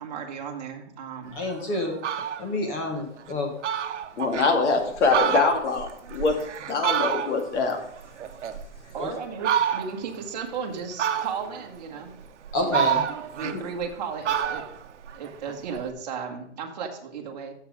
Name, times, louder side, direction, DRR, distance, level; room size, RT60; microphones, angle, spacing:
voice 1, 0.0-1.4 8.9-12.2 12.6-14.6 15.1-17.5, right 6 dB, 35° right, 1 dB, 1.4 m, -35 dB
voice 2, 1.3-1.9 2.4-3.5 9.0-9.1 12.5-13.0, left 2 dB, 15° left, 2 dB, 1.1 m, -28 dB
Fowl, 1.4-1.5 1.9-2.5 3.0-3.1 3.3-3.4 3.6-4.5 5.0-7.6 7.9-9.0 9.4-10.1 11.0-11.6 12.2-13.9 14.2-15.8, right 9 dB, 85° right, 0.9 m, -28 dB
voice 3, 4.2-6.4 6.7-7.8 13.4-13.6, left 4 dB, 80° left, 4 dB, 2.2 m, -24 dB
7.2 x 6.8 x 4.8 m, 0.70 s
hypercardioid pair, 180°, 35 cm